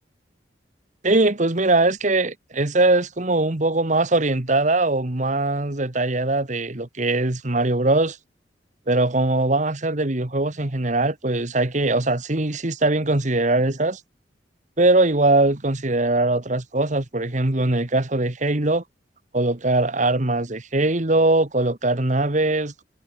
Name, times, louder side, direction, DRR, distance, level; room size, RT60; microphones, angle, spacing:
voice 1, 1.0-8.2 8.9-14.0 14.8-18.8 19.3-22.8, right 2 dB, 40° right, 1.5 m, -21 dB
head